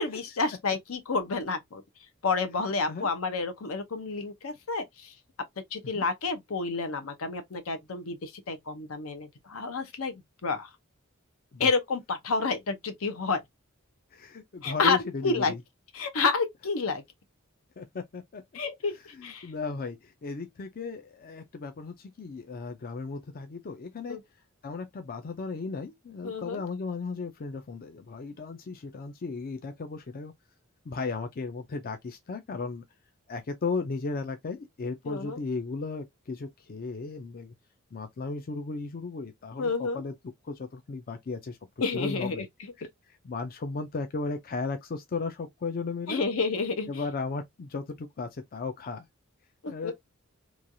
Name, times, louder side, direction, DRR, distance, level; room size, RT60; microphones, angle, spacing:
voice 1, 0.0-1.8 2.2-5.1 5.7-10.1 10.4-10.7 11.6-13.4 14.6-15.5 15.9-17.0 18.5-19.5 24.1-24.2 26.2-26.6 35.0-35.4 39.6-40.0 41.8-42.4 46.1-46.9 49.6-49.9, left 4 dB, 80° left, 0.7 m, -29 dB
voice 2, 14.1-15.6 17.8-18.4 19.1-24.2 24.6-30.3 30.9-32.8 33.3-37.5 37.9-40.1 40.4-41.6 41.9-42.5 42.8-42.9 43.2-46.2 46.9-49.1 49.7-49.9, left 4 dB, 45° left, 0.4 m, -35 dB
3.1 x 2.3 x 2.5 m
head